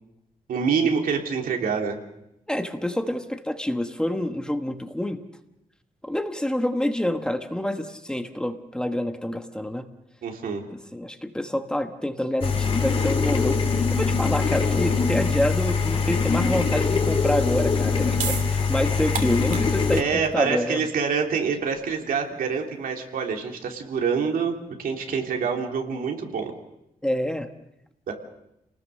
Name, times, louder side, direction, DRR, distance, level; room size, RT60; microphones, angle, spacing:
voice 1, 0.5-2.0 10.2-10.6 19.9-26.5 28.1-28.2, right 6 dB, 90° right, 2 dB, 3.2 m, -26 dB
voice 2, 2.5-5.2 6.0-9.9 10.7-20.8 27.0-27.5, left 1 dB, 5° left, 7 dB, 1.1 m, -27 dB
sound 1, 12.4-20.0, left 5 dB, 40° left, 2.5 m, -23 dB
sound 2, 18.1-24.5, right 6 dB, 65° right, 3.0 m, -37 dB
28.5 x 19.5 x 6.4 m, 0.84 s
wide cardioid pair, 155°, 14 cm